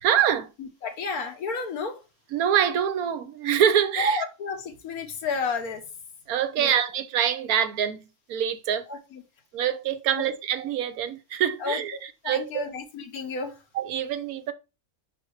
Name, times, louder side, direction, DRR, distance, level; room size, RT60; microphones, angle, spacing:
voice 1, 0.0-0.5 2.3-4.2 6.3-8.8 9.5-12.0 12.3-12.6 13.7-14.5, right 9 dB, 80° right, 1.2 m, -25 dB
voice 2, 0.6-2.0 4.0-5.8 6.6-6.7 8.9-9.2 10.1-10.2 11.6-13.6, left 3 dB, 80° left, 1.7 m, -31 dB
5.2 x 4.4 x 4.7 m
omnidirectional pair, 1.6 m